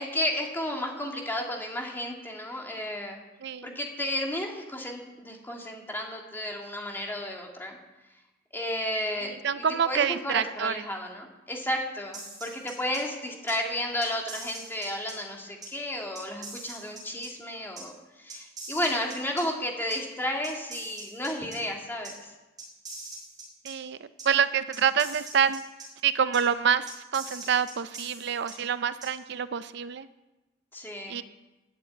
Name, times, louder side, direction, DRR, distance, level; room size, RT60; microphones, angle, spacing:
voice 1, 0.0-3.2 3.6-7.8 8.5-22.3 30.7-31.2, left 1 dB, 10° left, 1 dB, 2.0 m, -33 dB
voice 2, 3.4-3.8 9.4-10.7 23.6-24.0 24.2-25.6 26.0-30.1 31.1-31.2, right 7 dB, 60° right, 13 dB, 0.4 m, -26 dB
sound 1, 12.1-13.0 13.5-13.6 14.0-15.1 15.6-15.7 16.2-17.3 17.8-17.9 18.3-19.4 19.9-20.0 20.4-21.6 22.0-22.1 22.6-23.7 24.2-24.3 24.7-25.9 26.3-26.4 26.9-28.5 29.0-29.1, right 3 dB, 20° right, 4.8 m, -42 dB
12.0 x 8.5 x 8.9 m, 1.1 s
head